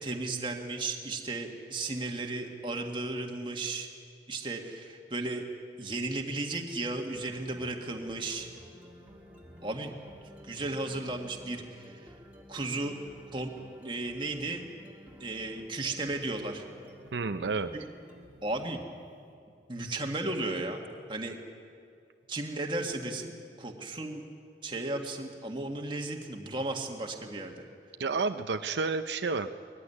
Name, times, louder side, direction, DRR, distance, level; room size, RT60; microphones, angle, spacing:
voice 1, 0.0-3.9 4.3-5.4 5.8-8.5 9.6-9.9 10.4-12.1 12.5-13.0 13.3-13.5 13.8-14.6 15.2-16.7 17.7-17.8 18.4-18.8 19.7-20.8 21.1-21.4 22.3-24.2 24.6-27.6, right 2 dB, 30° right, 2 dB, 1.7 m, -34 dB
sound 1, 7.1-19.1, equal, 10° right, 2.3 m, -52 dB
voice 2, 17.1-17.7 28.0-29.5, right 4 dB, 80° right, 8 dB, 0.6 m, -30 dB
20.5 x 15.0 x 9.8 m, 2.4 s
head